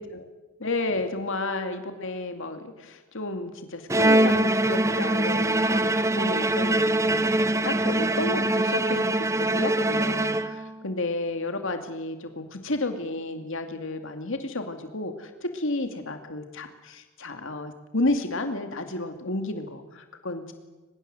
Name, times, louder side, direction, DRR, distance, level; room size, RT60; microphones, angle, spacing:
voice 1, 0.6-20.5, left 2 dB, 65° left, 6 dB, 2.4 m, -32 dB
Bowed string instrument, 3.9-10.9, right 1 dB, 15° right, 0.7 m, -23 dB
23.5 x 21.5 x 7.8 m, 1.2 s
head